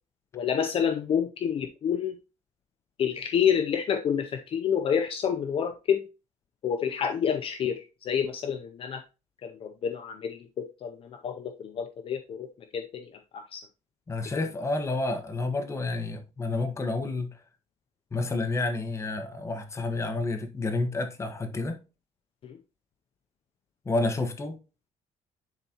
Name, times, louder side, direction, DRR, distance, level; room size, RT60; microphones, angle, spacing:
voice 1, 0.3-2.2 3.0-6.0 6.6-9.0 9.4-12.5 12.7-13.6 22.4-22.6, left 8 dB, 45° left, 0.6 m, -28 dB
voice 2, 14.1-17.3 18.1-21.8 23.8-24.6, left 2 dB, 20° left, 1.2 m, -29 dB
10.5 x 4.0 x 2.9 m
cardioid pair, 145°, 13 cm